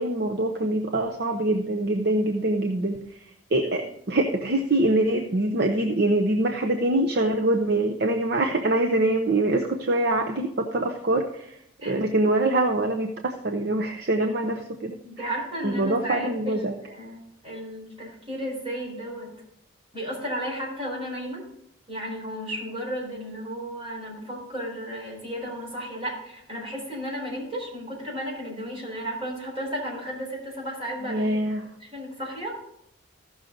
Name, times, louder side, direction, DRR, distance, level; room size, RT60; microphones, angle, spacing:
voice 1, 0.0-3.2 3.5-15.2 15.6-16.8 31.0-31.7, right 2 dB, 50° right, 3 dB, 0.7 m, -24 dB
voice 2, 15.0-19.3 19.9-21.4 21.9-31.3 31.8-32.5, equal, 25° right, -4 dB, 4.4 m, -34 dB
15.0 x 6.4 x 3.9 m, 0.75 s
head